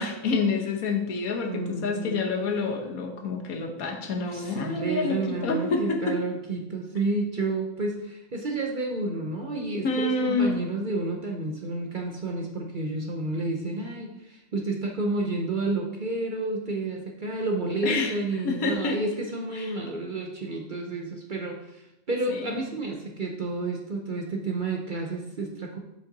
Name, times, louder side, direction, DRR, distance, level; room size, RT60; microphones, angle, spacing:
voice 1, 0.0-6.2 9.8-10.6 17.8-18.2 18.4-19.0 19.6-19.8 22.3-22.6, left 3 dB, 80° left, 3 dB, 1.5 m, -28 dB
voice 2, 1.4-2.2 4.1-25.8, right 2 dB, 45° right, 2 dB, 0.7 m, -30 dB
7.5 x 5.4 x 4.0 m, 0.92 s
omnidirectional pair, 1.5 m